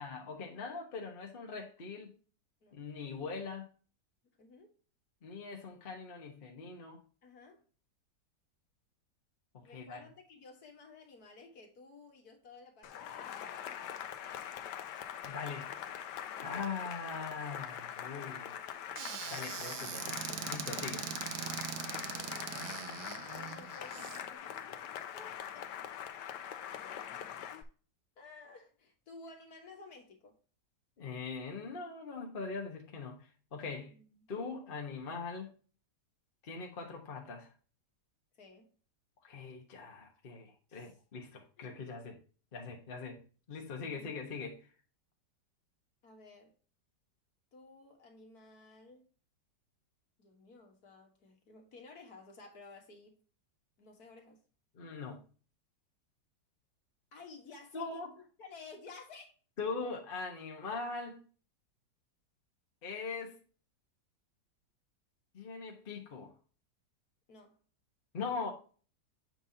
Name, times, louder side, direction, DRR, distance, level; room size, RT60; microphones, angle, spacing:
voice 1, 0.0-2.1 2.7-3.7 5.2-7.0 9.5-10.0 14.2-14.5 15.2-15.7 16.4-18.6 19.3-21.1 31.0-33.9 34.3-35.5 36.4-37.5 39.2-42.2 42.5-43.2 43.5-44.6 54.7-55.2 57.7-58.1 59.6-61.2 62.8-63.4 65.3-66.3 68.1-68.5, left 4 dB, 35° left, 1.1 m, -41 dB
voice 2, 4.4-4.8 7.2-7.7 9.6-13.8 21.8-22.8 23.3-25.9 26.3-26.4 26.8-27.6 28.2-30.3 33.8-34.3 38.4-38.7 40.7-40.9 41.6-41.8 46.0-46.5 47.5-49.1 50.2-53.2 53.8-54.4 57.1-59.3 59.8-59.9 67.3-67.6, left 3 dB, 60° left, 1.8 m, -55 dB
Cheering / Applause, 12.8-27.6, left 9 dB, 75° left, 1.3 m, -43 dB
Squeak / Cupboard open or close, 19.0-24.2, right 9 dB, 70° right, 1.3 m, -41 dB
7.7 x 5.4 x 2.7 m
omnidirectional pair, 2.0 m